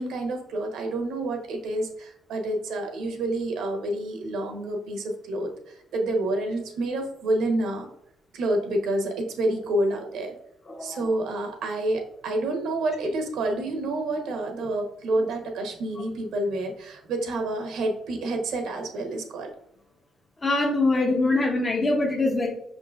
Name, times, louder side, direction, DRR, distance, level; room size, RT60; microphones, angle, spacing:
voice 1, 0.0-7.9 8.3-10.3 10.8-19.5, right 1 dB, 85° right, 3 dB, 1.0 m, -28 dB
voice 2, 10.7-11.1 20.4-22.5, left 2 dB, 30° left, -2 dB, 0.7 m, -23 dB
5.4 x 3.7 x 2.5 m, 0.75 s
cardioid pair, 90°, 0 cm